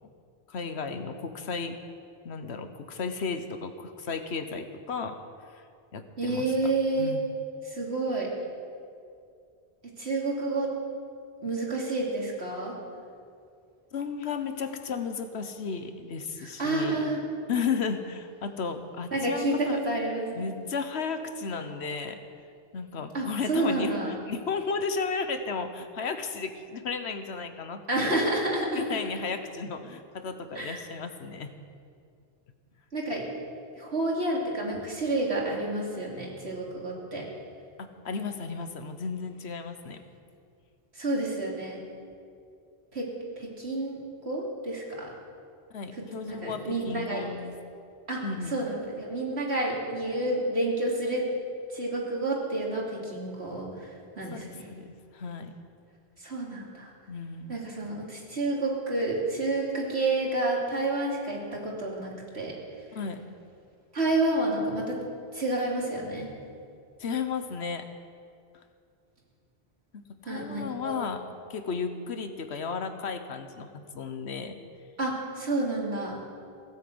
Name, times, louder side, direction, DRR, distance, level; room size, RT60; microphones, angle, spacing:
voice 1, 0.5-1.8 2.2-5.2 5.5-5.6 5.9-6.5 7.0-7.3 13.9-17.0 17.5-19.8 20.3-22.2 22.7-28.2 28.7-31.5 38.0-40.0 45.7-47.5 48.2-48.6 54.3-55.5 57.1-57.6 62.9-63.2 67.0-67.9 69.9-71.2 71.5-73.7 73.9-74.6, left 5 dB, 85° left, 8 dB, 1.3 m, -34 dB
voice 2, 6.2-7.1 7.6-8.3 10.0-10.7 11.4-12.7 16.4-17.2 19.1-20.3 23.1-24.1 27.9-28.8 30.5-30.8 32.9-33.2 33.8-37.2 40.9-41.8 42.9-43.1 43.4-44.0 44.2-45.1 46.3-47.2 48.1-48.2 48.5-51.3 51.7-53.9 54.2-54.7 56.2-56.9 57.5-62.5 63.9-65.0 65.3-66.3 70.3-71.0 75.0-76.2, right 2 dB, 85° right, -3 dB, 3.1 m, -29 dB
17.0 x 9.2 x 7.9 m, 2.4 s
omnidirectional pair, 1.1 m